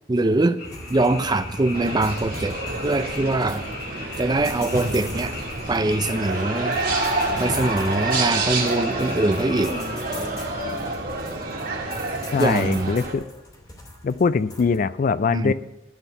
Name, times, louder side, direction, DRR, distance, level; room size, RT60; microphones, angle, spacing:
voice 1, 0.1-0.6 0.9-2.6 2.8-3.6 4.2-5.4 5.7-6.8 7.4-9.8 12.4-13.0 15.3-15.5, right 2 dB, 20° right, 11 dB, 0.5 m, -22 dB
Frog, 0.6-10.0, left 3 dB, 90° left, 4.7 m, -38 dB
sound 1, 0.6-14.8, left 1 dB, 20° left, 2.5 m, -41 dB
sound 2, 1.7-13.1, right 2 dB, 50° right, 1.9 m, -28 dB
voice 2, 12.3-13.2 14.0-15.5, left 5 dB, 45° left, 15 dB, 0.3 m, -22 dB
13.0 x 4.5 x 8.1 m, 0.97 s
head